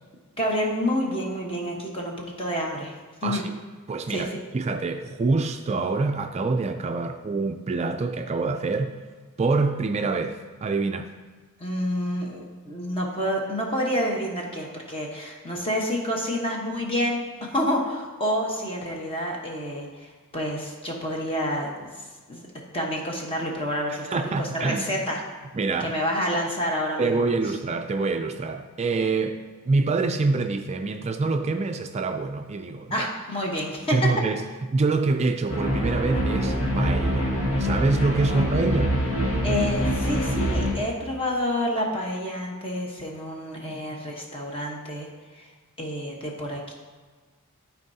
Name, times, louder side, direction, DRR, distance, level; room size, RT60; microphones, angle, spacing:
voice 1, 0.4-2.9 3.2-3.4 4.1-4.4 11.6-22.4 22.7-25.2 25.8-27.2 32.9-34.0 39.4-45.1 45.3-45.5 45.8-46.7, equal, 25° left, 1.0 m, -28 dB
voice 2, 3.2-3.6 3.9-8.9 9.4-11.1 24.1-25.0 25.5-26.0 27.0-33.1 33.9-34.4 34.7-38.9, right 3 dB, 30° right, 0.3 m, -26 dB
sound 1, 35.5-40.7, equal, 90° left, 1.7 m, -25 dB
13.0 x 4.6 x 2.7 m
head